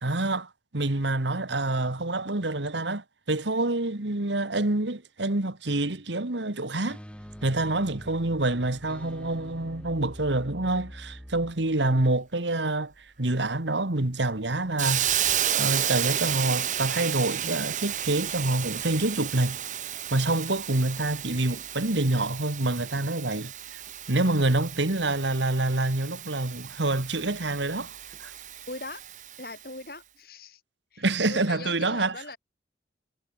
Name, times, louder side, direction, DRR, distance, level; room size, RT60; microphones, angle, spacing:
voice 1, 0.0-7.0 7.4-12.9 13.2-15.1 15.5-19.6 20.1-23.5 24.1-27.9 28.2-28.3 31.0-32.2, right 2 dB, 85° right, 2.0 m, -27 dB
sound 1, 6.4-11.5, equal, 5° left, 3.5 m, -45 dB
Hiss, 14.8-29.6, right 10 dB, 45° right, 1.7 m, -32 dB
voice 2, 28.7-29.0 29.4-30.6 30.9-32.4, left 2 dB, 55° left, 5.8 m, -40 dB
head